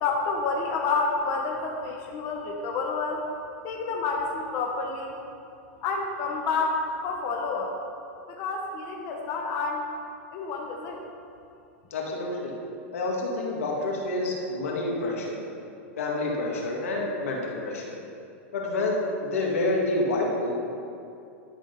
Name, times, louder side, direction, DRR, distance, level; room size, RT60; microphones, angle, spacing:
voice 1, 0.0-3.3 3.6-5.1 5.8-7.8 8.3-9.9 10.3-11.0, left 4 dB, 45° left, -1 dB, 1.0 m, -29 dB
voice 2, 11.9-12.5 12.9-15.4 16.0-17.9 18.5-20.5, left 2 dB, 85° left, -2 dB, 1.9 m, -28 dB
11.5 x 3.8 x 6.6 m, 2.6 s
hypercardioid pair, 120°, 7 cm